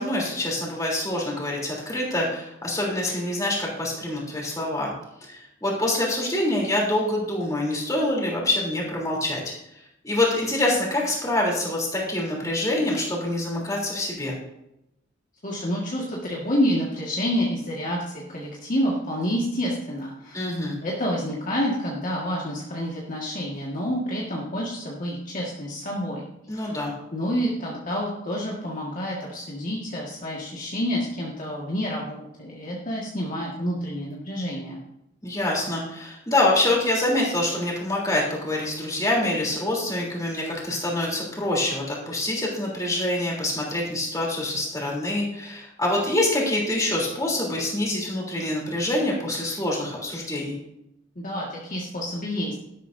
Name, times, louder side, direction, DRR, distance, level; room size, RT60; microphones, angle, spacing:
voice 1, 0.0-4.9 5.2-9.5 10.0-14.3 20.3-20.8 26.5-26.9 35.2-50.6, left 1 dB, 15° left, -3 dB, 3.4 m, -25 dB
voice 2, 15.4-20.4 20.8-26.8 27.1-34.8 51.2-52.5, equal, 40° left, -4 dB, 1.8 m, -28 dB
12.0 x 12.0 x 2.7 m, 0.84 s
head